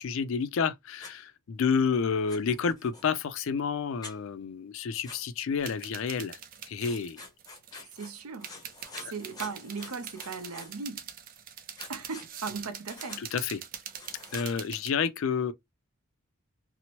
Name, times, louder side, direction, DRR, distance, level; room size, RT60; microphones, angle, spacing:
voice 1, 0.0-6.4 6.7-7.2 7.7-7.8 9.0-9.1 13.2-13.6 14.3-15.5, left 6 dB, 60° left, 0.4 m, -30 dB
Writing, 1.0-1.1 2.3-3.2 4.0-4.2 5.0-5.2 6.8-8.1 8.4-10.9 11.8-12.3 12.9-13.2 13.9-14.5, left 3 dB, 15° left, 0.6 m, -47 dB
sound 1, 5.6-14.9, right 8 dB, 40° right, 0.4 m, -44 dB
voice 2, 7.9-8.6 9.0-11.0 11.9-13.3, right 4 dB, 80° right, 0.7 m, -38 dB
2.9 x 2.0 x 2.8 m
head